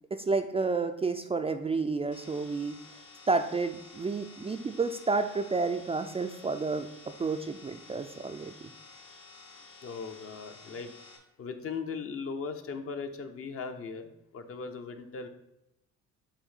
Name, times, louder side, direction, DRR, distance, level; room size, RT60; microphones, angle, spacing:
voice 1, 0.1-2.8 3.3-6.9 7.2-8.7, right 4 dB, 20° right, 7 dB, 0.3 m, -30 dB
sound 1, 2.1-11.2, left 3 dB, 65° left, 1.4 m, -52 dB
voice 2, 9.8-10.9 11.4-15.3, left 5 dB, 50° left, 7 dB, 0.7 m, -38 dB
6.9 x 2.7 x 5.5 m, 0.88 s
cardioid pair, 90°, 30 cm